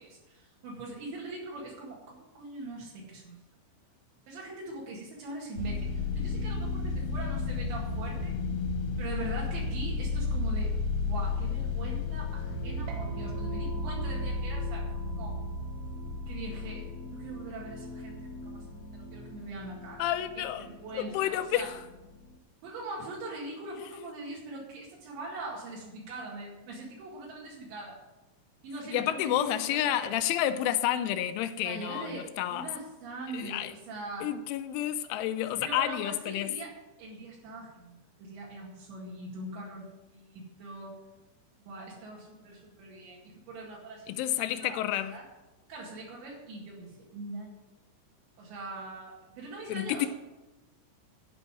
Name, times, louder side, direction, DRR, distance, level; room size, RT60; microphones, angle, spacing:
voice 1, 0.0-3.4 4.3-8.3 9.0-10.7 11.0-15.4 16.3-20.1 20.4-21.7 22.6-28.0 28.6-29.5 29.8-30.1 31.6-32.3 32.5-34.3 35.6-36.7 37.0-41.0 41.6-44.3 44.6-44.8 45.1-45.2 45.7-47.6 48.4-50.1, right 2 dB, 70° right, 4.2 m, -42 dB
sound 1, 5.6-22.3, left 3 dB, 65° left, 2.0 m, -34 dB
sound 2, 12.9-19.7, right 5 dB, 90° right, 3.8 m, -53 dB
voice 2, 20.0-20.7 20.9-21.8 28.9-32.7 33.3-33.7 34.2-36.5 44.1-45.1 49.7-50.1, left 12 dB, 90° left, 3.1 m, -30 dB
12.5 x 5.4 x 9.0 m
omnidirectional pair, 5.5 m